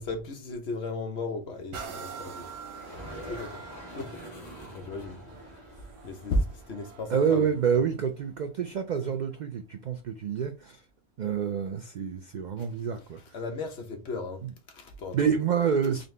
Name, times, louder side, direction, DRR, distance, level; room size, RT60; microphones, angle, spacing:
voice 1, 0.0-2.5 3.2-3.6 3.9-4.2 4.7-5.2 6.0-7.5 12.6-12.7 13.3-15.2, left 2 dB, 60° left, 1.1 m, -34 dB
sound 1, 1.7-9.3 9.9-10.0, right 6 dB, 60° right, 1.0 m, -46 dB
sound 2, 2.6-8.3, equal, 35° left, 1.1 m, -46 dB
voice 2, 7.1-10.8 11.2-13.2 14.4-14.5 15.1-16.1, right 7 dB, 80° right, 0.4 m, -28 dB
4.0 x 2.6 x 3.2 m
omnidirectional pair, 1.3 m